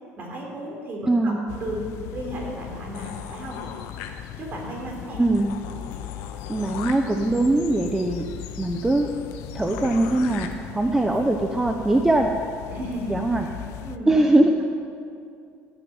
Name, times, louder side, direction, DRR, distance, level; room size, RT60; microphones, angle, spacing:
voice 1, 0.2-3.6 4.4-5.2 12.7-13.2 13.8-14.2, right 1 dB, 40° right, -1 dB, 3.7 m, -34 dB
voice 2, 1.1-1.5 5.2-5.6 6.5-8.3 8.6-9.1 9.5-12.4 13.1-13.4 14.1-14.6, right 2 dB, 10° right, 4 dB, 0.8 m, -21 dB
sound 1, 1.5-14.0, left 11 dB, 70° left, 0.6 m, -38 dB
sound 2, 2.9-4.6 5.0-5.1 5.3-10.5, left 8 dB, 90° left, 1.2 m, -41 dB
14.5 x 7.0 x 9.5 m, 2.4 s
cardioid pair, 130°, 5 cm